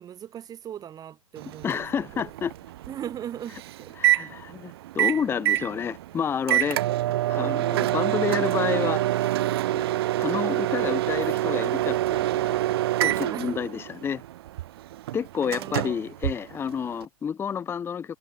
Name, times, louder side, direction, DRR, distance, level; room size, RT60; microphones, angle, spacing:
voice 1, 0.0-1.9 2.1-2.3 2.9-4.2 13.2-13.6 15.3-16.1, right 10 dB, 20° right, 3.5 m, -39 dB
Microwave oven, 1.4-17.1, right 15 dB, 45° right, 0.4 m, -26 dB
voice 2, 1.6-2.5 4.0-6.8 7.3-9.5 9.7-9.8 10.2-12.6 13.0-14.2 15.1-18.2, left 7 dB, 15° left, 1.0 m, -30 dB
figure-of-eight pair, 105°, 18 cm